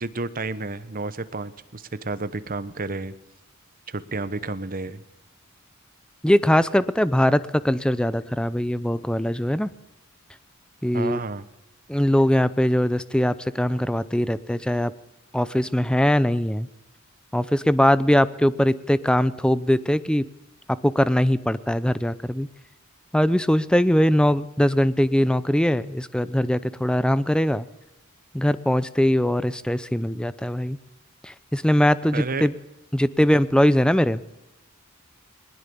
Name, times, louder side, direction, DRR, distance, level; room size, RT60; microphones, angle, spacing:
voice 1, 0.0-3.1 3.9-5.0 10.9-11.4 32.1-32.5, right 3 dB, 40° right, 13 dB, 1.1 m, -31 dB
voice 2, 6.2-9.7 10.8-11.2 11.9-14.9 15.3-16.7 17.3-20.2 20.8-22.5 23.1-27.7 28.3-30.8 31.2-32.5 32.9-34.2, equal, 5° left, 15 dB, 0.6 m, -21 dB
20.5 x 20.0 x 7.1 m, 0.96 s
head